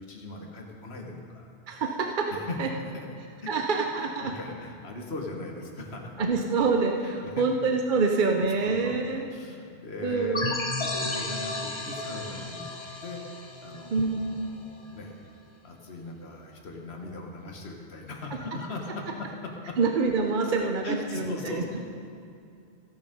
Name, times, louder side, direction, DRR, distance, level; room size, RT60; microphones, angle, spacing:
voice 1, 0.0-1.5 2.3-3.1 3.4-3.5 4.0-6.1 7.0-7.5 8.6-9.0 9.3-10.4 10.8-12.6 13.0-13.2 13.6-15.2 15.6-19.8 20.6-21.8, left 2 dB, 70° left, 1 dB, 1.7 m, -39 dB
voice 2, 1.7-2.3 2.6-2.7 3.5-4.3 6.2-9.2 10.0-10.5 13.9-14.2 19.8-21.6, right 4 dB, 50° right, 3 dB, 0.8 m, -26 dB
sound 1, 10.3-14.8, left 2 dB, 30° left, 0.7 m, -33 dB
16.5 x 7.3 x 5.2 m, 2.5 s
omnidirectional pair, 1.1 m